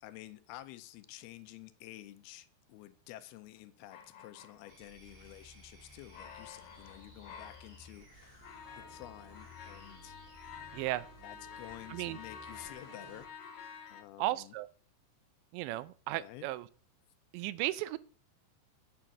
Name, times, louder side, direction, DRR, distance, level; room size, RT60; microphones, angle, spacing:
voice 1, 0.0-10.2 11.2-13.4 13.9-14.5 15.7-15.8 16.2-16.5, left 15 dB, 80° left, 11 dB, 2.3 m, -51 dB
sound 1, 3.9-5.1 6.0-7.9 8.2-14.0, left 7 dB, 65° left, 2.2 m, -50 dB
sound 2, 4.7-13.3, equal, 20° right, 2.9 m, -56 dB
voice 2, 10.7-11.1 11.9-12.2 14.2-14.7 15.5-16.7 17.3-18.0, right 16 dB, 85° right, 16 dB, 2.8 m, -35 dB
8.8 x 7.7 x 5.9 m, 0.41 s
omnidirectional pair, 5.1 m